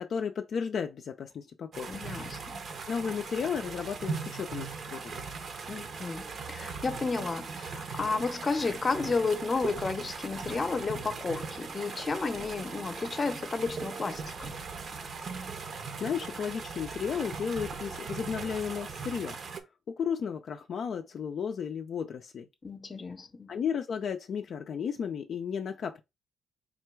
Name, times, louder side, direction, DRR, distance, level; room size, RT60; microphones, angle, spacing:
voice 1, 0.0-1.9 2.9-5.3 16.0-19.4 19.9-22.5 23.5-26.0, left 7 dB, 60° left, 0.4 m, -34 dB
sound 1, 1.7-19.6, right 5 dB, 55° right, 0.7 m, -39 dB
voice 2, 1.9-2.7 5.7-14.5 22.6-23.5, left 4 dB, 30° left, 0.7 m, -32 dB
3.7 x 2.3 x 4.5 m
cardioid pair, 90°, 0 cm